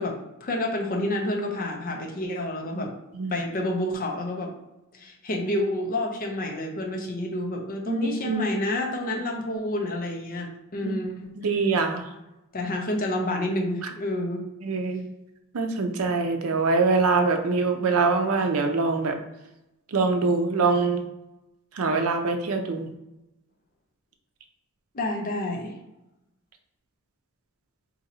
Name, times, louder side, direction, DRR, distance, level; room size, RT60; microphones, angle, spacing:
voice 1, 0.0-2.9 3.3-4.5 4.9-11.3 12.5-14.4 24.9-25.7, left 1 dB, 40° left, 1 dB, 0.6 m, -29 dB
voice 2, 7.9-8.6 10.8-10.9 11.4-12.0 14.6-15.0 15.5-19.2 19.9-21.0 21.8-22.9, right 3 dB, 75° right, 5 dB, 0.5 m, -24 dB
2.7 x 2.5 x 4.1 m, 0.94 s
head